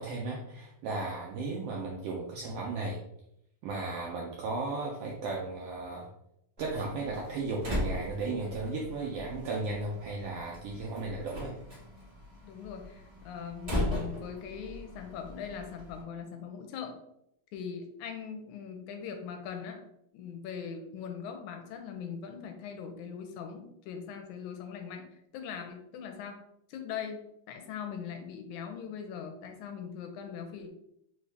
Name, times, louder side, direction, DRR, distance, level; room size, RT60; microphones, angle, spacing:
voice 1, 0.0-3.0 3.6-6.1 6.6-11.5, right 3 dB, 80° right, -2 dB, 1.4 m, -35 dB
Slam, 6.6-16.0, left 1 dB, 20° right, 0.8 m, -39 dB
voice 2, 12.4-17.0 17.5-19.8 20.1-26.4 26.7-27.2 27.5-30.7, left 7 dB, 80° left, 5 dB, 2.0 m, -41 dB
4.7 x 2.7 x 3.2 m, 0.76 s
omnidirectional pair, 3.4 m